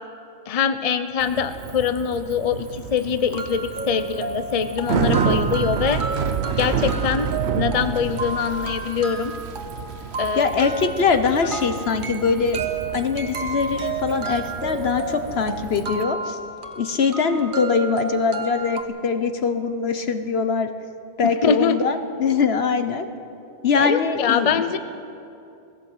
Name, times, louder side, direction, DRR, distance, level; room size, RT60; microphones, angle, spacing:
voice 1, 0.5-6.0 6.5-7.3 7.5-9.3 10.2-10.5 11.4-11.5 21.2-21.8 23.7-24.8, left 6 dB, 40° left, 10 dB, 0.8 m, -23 dB
Bicycle, 1.2-16.0, right 7 dB, 80° right, 1.0 m, -29 dB
sound 1, 2.8-2.9 3.3-18.8, right 3 dB, 50° right, 1.4 m, -32 dB
voice 2, 10.4-12.6 12.9-16.4 16.8-20.7 21.2-23.1 23.6-24.6, left 5 dB, 70° left, 8 dB, 1.3 m, -22 dB
19.5 x 16.5 x 8.0 m, 2.7 s
omnidirectional pair, 1.1 m